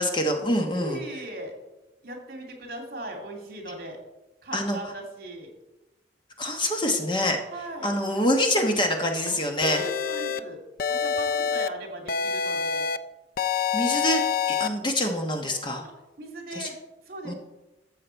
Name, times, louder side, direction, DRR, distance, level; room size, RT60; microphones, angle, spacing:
voice 1, 0.0-1.0 4.5-4.8 6.4-7.4 7.8-9.8 13.7-15.8 16.5-16.7 17.2-17.3, left 1 dB, 25° left, 3 dB, 1.1 m, -25 dB
voice 2, 0.7-1.5 2.0-4.0 4.4-5.5 7.5-7.9 9.7-10.6 10.9-12.9 15.8-15.9 16.2-16.8 17.1-17.3, right 1 dB, 55° right, 2 dB, 2.5 m, -38 dB
sound 1, 9.6-10.4 10.8-11.7 12.1-13.0 13.4-14.7, left 7 dB, 50° left, 0.4 m, -26 dB
13.5 x 7.5 x 4.5 m, 1.0 s
head